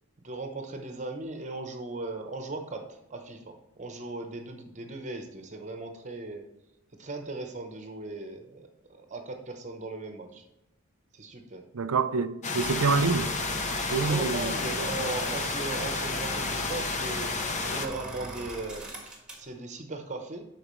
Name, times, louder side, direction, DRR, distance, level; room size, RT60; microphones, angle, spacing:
voice 1, 0.2-6.4 7.0-10.5 11.1-11.6 14.0-20.5, right 2 dB, 35° right, 0.9 m, -38 dB
voice 2, 11.7-13.3 13.9-14.5, right 4 dB, 70° right, 0.5 m, -26 dB
sound 1, 12.4-17.9, left 4 dB, 35° left, 0.7 m, -31 dB
sound 2, 12.6-19.5, right 2 dB, 5° right, 1.5 m, -40 dB
12.0 x 4.6 x 3.1 m
head